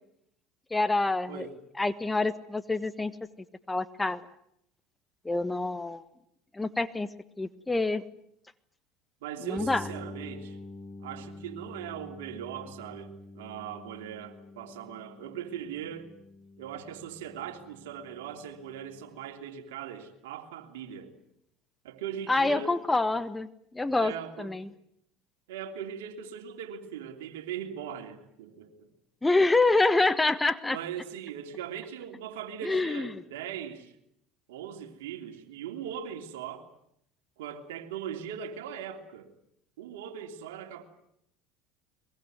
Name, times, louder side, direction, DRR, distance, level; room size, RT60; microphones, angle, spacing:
voice 1, 0.7-1.5 1.8-3.1 3.7-4.2 5.2-6.0 6.5-7.1 7.4-8.0 9.5-9.8 22.3-23.5 23.7-24.1 24.4-24.7 29.2-30.8 32.7-33.1, left 2 dB, 15° left, 13 dB, 1.4 m, -26 dB
voice 2, 9.2-10.6 11.0-16.1 16.6-21.1 21.8-22.7 24.0-24.6 25.5-28.9 30.6-33.9 34.5-36.7 37.4-39.3 39.8-40.8, right 8 dB, 80° right, 5 dB, 3.1 m, -40 dB
sound 1, 9.6-19.3, left 2 dB, 35° left, 5.3 m, -47 dB
23.0 x 22.0 x 9.4 m, 0.75 s
hypercardioid pair, 80°, 0 cm